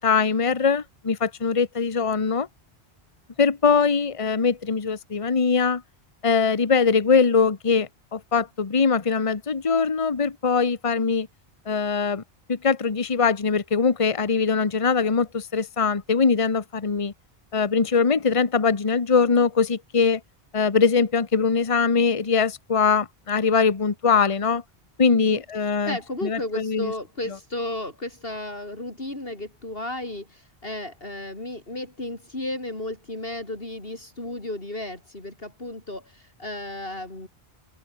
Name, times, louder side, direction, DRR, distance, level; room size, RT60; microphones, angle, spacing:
voice 1, 0.0-2.5 3.4-5.8 6.2-11.3 11.7-12.2 12.5-17.1 17.5-20.2 20.5-24.6 25.0-26.9, left 5 dB, 30° left, 1.2 m, -22 dB
voice 2, 25.0-25.4 25.9-37.3, left 1 dB, 60° left, 5.4 m, -34 dB
omnidirectional pair, 1.1 m